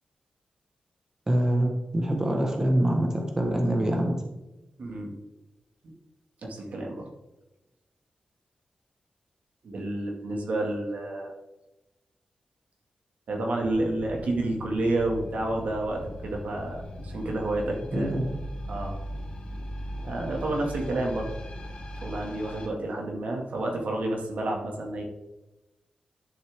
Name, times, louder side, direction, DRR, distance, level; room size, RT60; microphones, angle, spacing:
voice 1, 1.3-4.2 17.9-18.3, right 1 dB, 25° right, 2 dB, 1.4 m, -25 dB
voice 2, 4.8-5.1 6.4-7.1 9.6-11.3 13.3-18.2 18.7-19.0 20.0-21.3 22.0-25.0, right 2 dB, 75° right, 0 dB, 2.2 m, -30 dB
sound 1, 13.6-22.7, equal, 45° left, 1.9 m, -39 dB
11.0 x 6.6 x 3.7 m, 0.98 s
wide cardioid pair, 130°, 3 cm